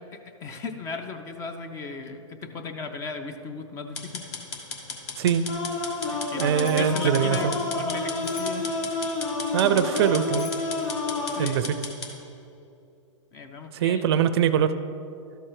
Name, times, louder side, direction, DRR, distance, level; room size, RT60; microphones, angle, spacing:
voice 1, 0.0-4.3 6.1-8.7 11.3-11.7 13.3-14.1, left 5 dB, 20° left, 7 dB, 0.4 m, -36 dB
sound 1, 4.0-12.1, left 4 dB, 50° left, 1.4 m, -36 dB
sound 2, 5.5-11.5, left 2 dB, 65° left, 1.9 m, -29 dB
Bicycle bell, 6.3-7.0 8.2-8.8 10.0-10.8, left 5 dB, 35° left, 1.0 m, -45 dB
voice 2, 6.4-7.5 9.5-10.5 11.4-11.8 13.7-14.7, right 9 dB, 50° right, 12 dB, 0.4 m, -22 dB
12.5 x 4.4 x 4.8 m, 2.7 s
hypercardioid pair, 145°, 17 cm